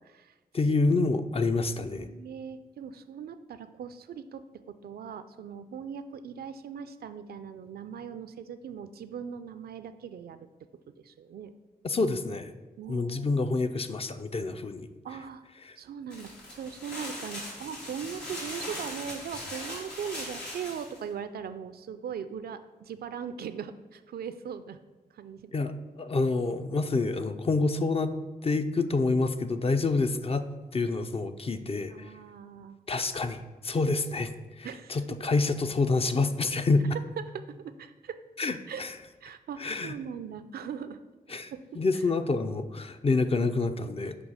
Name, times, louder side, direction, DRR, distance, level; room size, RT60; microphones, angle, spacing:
voice 1, 0.5-2.1 11.8-12.5 12.9-14.9 25.5-28.1 28.4-30.5 30.7-32.1 32.9-36.9 38.4-38.9 39.6-39.9 41.3-44.1, left 3 dB, 35° left, 9 dB, 0.5 m, -27 dB
voice 2, 1.9-10.5 11.0-11.5 12.8-13.2 15.0-15.4 15.8-24.8 25.1-25.5 31.9-32.8 34.6-35.0 37.2-38.2 38.7-38.8 39.2-41.0 41.5-41.8, right 7 dB, 70° right, 11 dB, 0.4 m, -40 dB
sound 1, 16.1-21.0, left 1 dB, 85° left, 1.7 m, -40 dB
6.1 x 2.8 x 5.5 m, 1.2 s
supercardioid pair, 45°, 17 cm